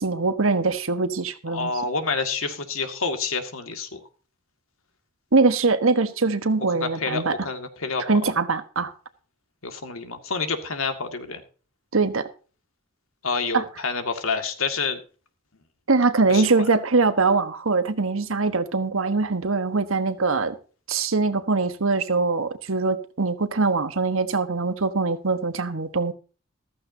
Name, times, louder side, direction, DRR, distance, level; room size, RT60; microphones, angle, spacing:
voice 1, 0.0-1.7 5.3-7.4 8.1-8.9 11.9-12.3 13.5-13.6 15.9-20.5 20.9-26.1, right 3 dB, 80° right, 1.2 m, -22 dB
voice 2, 1.5-4.0 6.8-8.2 9.6-11.4 13.2-15.0 16.3-16.7, left 4 dB, 85° left, 2.1 m, -28 dB
14.5 x 14.0 x 2.7 m
head